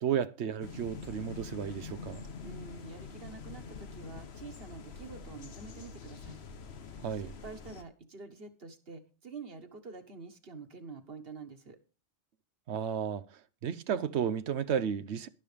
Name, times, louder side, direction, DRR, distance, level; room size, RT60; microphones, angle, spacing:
voice 1, 0.0-2.2 7.0-7.3 12.7-13.3 13.6-15.3, right 8 dB, 75° right, 1.0 m, -33 dB
sound 1, 0.6-7.8, left 5 dB, 70° left, 1.2 m, -45 dB
voice 2, 2.4-6.4 6.9-11.8, right 4 dB, 60° right, 1.6 m, -47 dB
12.0 x 11.5 x 3.4 m
omnidirectional pair, 1.1 m